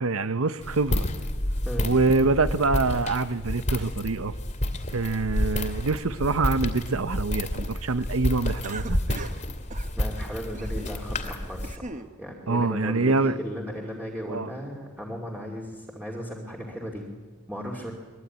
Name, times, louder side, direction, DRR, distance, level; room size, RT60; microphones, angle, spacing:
voice 1, 0.0-1.1 1.8-4.3 4.9-9.3 12.5-13.3 14.3-14.5, right 3 dB, 85° right, 13 dB, 0.9 m, -25 dB
Walk footsteps, 0.6-11.8, left 1 dB, 35° left, 2.5 m, -30 dB
Cough, 8.6-9.4 9.7-9.9 10.5-11.0 11.4-12.1, right 3 dB, 35° right, 1.2 m, -40 dB
voice 2, 10.0-17.1 17.5-17.9, equal, 5° right, -2 dB, 2.6 m, -36 dB
23.5 x 22.0 x 9.5 m, 1.5 s
head